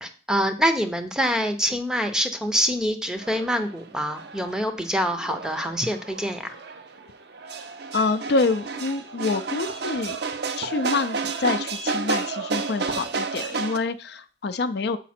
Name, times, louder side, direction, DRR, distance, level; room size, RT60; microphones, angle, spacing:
voice 1, 0.0-6.4, equal, 5° right, 7 dB, 0.6 m, -25 dB
sound 1, 3.2-13.8, right 4 dB, 55° right, 0.6 m, -31 dB
voice 2, 7.9-10.2 10.6-15.0, left 3 dB, 55° left, 10 dB, 0.4 m, -26 dB
7.3 x 4.9 x 4.3 m, 0.38 s
head